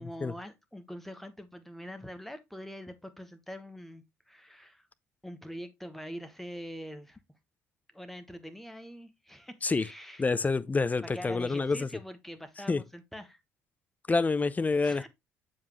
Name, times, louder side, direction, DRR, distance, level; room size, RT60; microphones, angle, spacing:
voice 1, 0.0-4.9 5.2-7.2 7.9-10.2 11.0-13.4 14.8-15.1, equal, 5° left, 1.3 m, -44 dB
voice 2, 10.2-11.9 12.7-12.8 14.1-15.1, left 4 dB, 20° left, 0.6 m, -27 dB
7.3 x 5.0 x 3.0 m
figure-of-eight pair, 50°, 7 cm